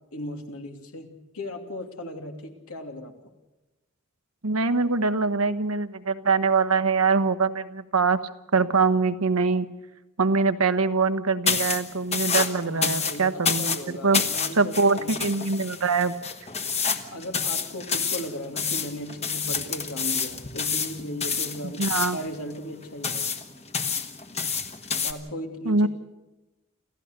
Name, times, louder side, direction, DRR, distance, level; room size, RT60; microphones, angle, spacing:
voice 1, 0.1-3.1 12.6-15.1 17.1-21.9 22.1-23.3 25.0-25.9, equal, 80° left, 4 dB, 2.9 m, -37 dB
voice 2, 4.4-8.2 8.5-9.7 10.2-14.2 14.6-16.1 21.6-22.2 25.6-25.9, right 4 dB, 85° right, 12 dB, 1.1 m, -23 dB
sound 1, 11.5-25.1, left 6 dB, 30° left, 1.5 m, -29 dB
27.5 x 15.0 x 6.7 m, 1.1 s
head